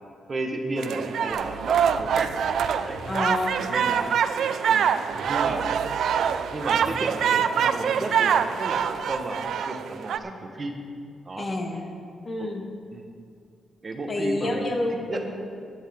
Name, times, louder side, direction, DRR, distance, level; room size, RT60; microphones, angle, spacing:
voice 1, 0.3-3.0 3.6-4.1 4.7-4.9 5.3-5.6 6.5-10.8 11.3-11.5 12.4-12.5 12.9-13.1 13.8-14.8 15.1-15.2, right 2 dB, 30° right, 3 dB, 1.1 m, -33 dB
sound 1, 0.8-10.2, right 8 dB, 70° right, 0.4 m, -25 dB
sound 2, 1.3-3.3 5.1-7.1 8.9-9.0, right 3 dB, 55° right, 1.6 m, -44 dB
voice 2, 3.1-3.7 11.4-11.8 12.2-12.7 14.1-15.3, left 2 dB, 30° left, 1 dB, 1.4 m, -28 dB
16.5 x 9.4 x 3.6 m, 2.3 s
wide cardioid pair, 160°, 0 cm